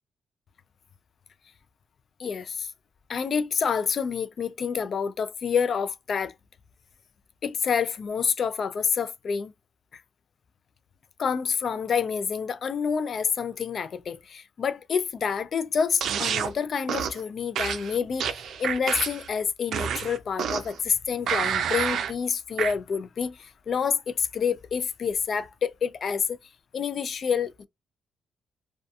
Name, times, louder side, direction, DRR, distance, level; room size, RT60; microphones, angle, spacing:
voice 1, 2.2-2.7 3.1-6.3 7.4-9.5 9.9-10.0 11.2-26.4 26.7-27.7, left 6 dB, 50° left, 0.3 m, -28 dB
sound 1, 16.0-16.5 16.9-17.2 17.6-19.3 19.7-20.8 21.3-22.1 22.6-22.7, right 8 dB, 75° right, 0.4 m, -28 dB
2.6 x 2.3 x 2.3 m
cardioid pair, 110°, 0 cm